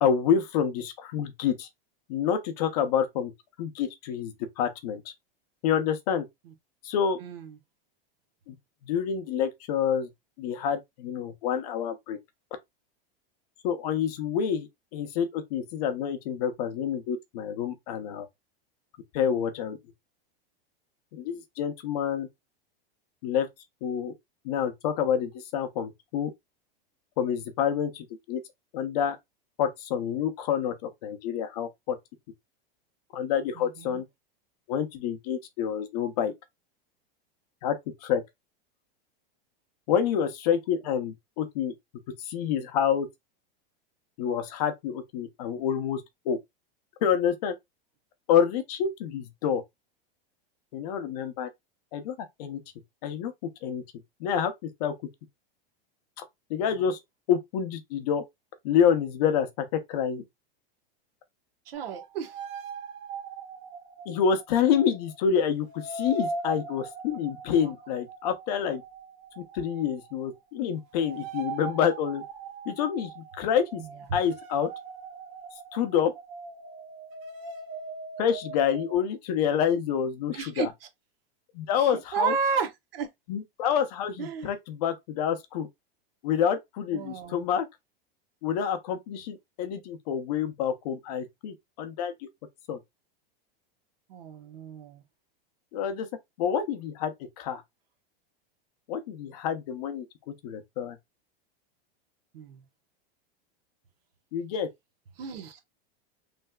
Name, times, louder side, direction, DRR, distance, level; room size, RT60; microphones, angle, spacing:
voice 1, 0.0-1.7 2.1-3.3 3.6-5.0 5.6-6.3 6.8-7.2 8.5-8.6 8.8-10.1 10.4-12.2 13.6-18.3 19.1-19.8 21.1-22.3 23.2-23.5 23.8-24.1 24.4-26.3 27.2-28.4 28.7-29.2 29.6-32.0 33.1-34.0 34.7-36.3 37.6-37.8 38.0-38.2 39.9-41.7 42.2-43.1 44.2-46.4 47.0-47.5 48.3-49.6 50.7-51.5 51.9-52.6 53.0-53.3 53.6-53.8 54.2-54.5 54.8-54.9 56.5-57.0 57.3-58.2 58.6-60.2 64.1-68.8 69.4-72.2 72.7-73.8 74.1-74.7 75.7-76.1 78.2-80.7 81.5-82.3 83.3-85.7 86.2-87.7 88.4-92.1 92.7-92.8 95.7-96.1 96.4-97.6 98.9-101.0 104.3-104.7, left 8 dB, 45° left, 0.6 m, -28 dB
voice 2, 33.5-34.0 61.7-62.4 73.8-74.0 80.3-80.7 81.8-83.1 84.2-84.5 86.9-87.4 94.1-95.0 102.3-102.6 105.2-105.6, right 6 dB, 75° right, 1.0 m, -32 dB
sound 1, 61.7-65.2 65.6-78.9, right 4 dB, 35° right, 0.7 m, -41 dB
3.2 x 2.6 x 2.3 m
supercardioid pair, 170°, 30 cm